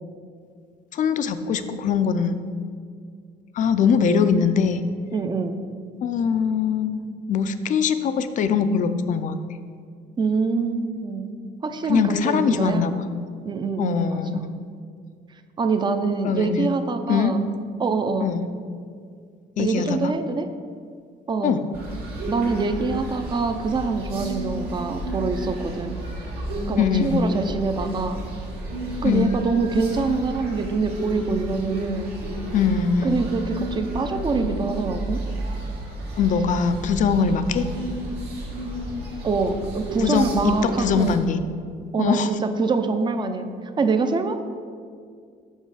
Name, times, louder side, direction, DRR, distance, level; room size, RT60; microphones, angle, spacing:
voice 1, 0.9-2.4 3.5-4.8 6.0-7.0 7.3-9.4 11.9-13.0 13.8-14.5 16.2-16.7 17.1-17.3 18.2-18.4 19.6-20.1 21.4-21.6 26.8-27.2 29.0-29.3 32.5-33.2 36.2-37.7 40.0-41.4 42.0-42.3, left 6 dB, 50° left, 11 dB, 0.4 m, -22 dB
voice 2, 5.1-5.6 10.2-11.3 11.6-12.9 13.4-14.5 15.6-17.4 17.8-18.3 19.6-20.5 21.3-21.6 22.3-26.0 26.7-28.2 29.0-32.1 33.0-35.2 37.2-37.4 39.2-41.2 41.9-43.5 43.8-44.4, right 4 dB, 25° right, 8 dB, 0.5 m, -25 dB
sound 1, 21.7-41.2, right 1 dB, 75° right, 1.5 m, -32 dB
5.5 x 5.4 x 4.9 m, 2.1 s
cardioid pair, 110°, 17 cm